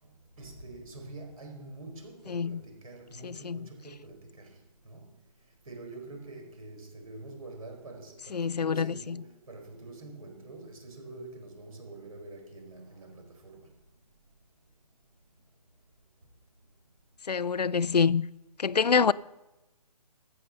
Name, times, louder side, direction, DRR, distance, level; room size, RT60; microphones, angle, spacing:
voice 1, 0.0-4.6 4.8-5.1 5.7-13.7, right 2 dB, 60° right, 4.4 m, -46 dB
voice 2, 3.2-3.7 8.3-9.2 17.3-18.2 18.6-19.1, left 6 dB, 85° left, 0.5 m, -26 dB
13.5 x 8.4 x 6.5 m
figure-of-eight pair, 155°, 20 cm